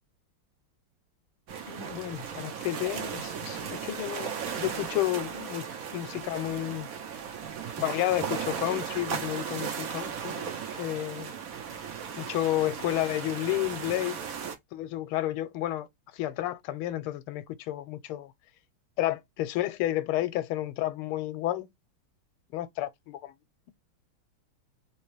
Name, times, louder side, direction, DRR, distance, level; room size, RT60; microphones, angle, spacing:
sound 1, 1.5-14.6, right 7 dB, 70° right, 0.8 m, -36 dB
voice 1, 1.7-6.9 7.8-10.5 10.8-11.3 12.2-14.2 14.7-15.9 16.1-18.3 19.0-21.7 22.5-23.3, left 14 dB, 80° left, 1.5 m, -31 dB
3.5 x 2.9 x 3.1 m
omnidirectional pair, 2.4 m